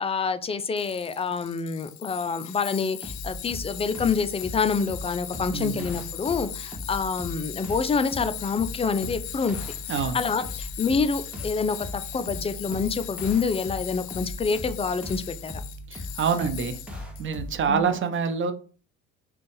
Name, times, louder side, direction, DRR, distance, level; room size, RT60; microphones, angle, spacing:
voice 1, 0.0-9.6 10.1-15.5 17.7-17.9, left 5 dB, 20° left, 12 dB, 0.4 m, -27 dB
Tools, 0.8-17.2, left 14 dB, 80° left, 0.5 m, -39 dB
sound 1, 3.0-17.8, left 1 dB, 5° right, 1.1 m, -39 dB
voice 2, 5.5-5.9 9.9-10.2 15.9-16.8 17.2-18.5, right 6 dB, 40° right, 8 dB, 0.6 m, -26 dB
4.1 x 2.3 x 3.2 m, 0.38 s
hypercardioid pair, 65°, 32 cm